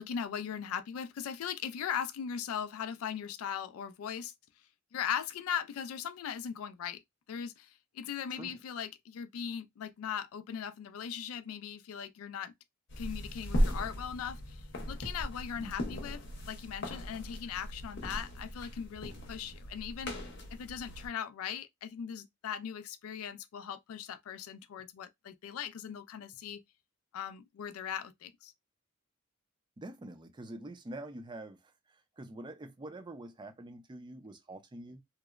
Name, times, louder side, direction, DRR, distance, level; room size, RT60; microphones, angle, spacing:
voice 1, 0.0-4.3 4.9-7.0 7.3-7.7 7.9-12.5 13.0-14.6 14.8-16.2 16.4-20.2 20.5-26.6 27.1-28.5, left 8 dB, 85° left, 0.3 m, -39 dB
sound 1, 12.9-21.1, equal, 55° left, 0.7 m, -37 dB
voice 2, 29.8-35.0, right 1 dB, 20° right, 0.4 m, -46 dB
2.8 x 2.0 x 2.3 m
head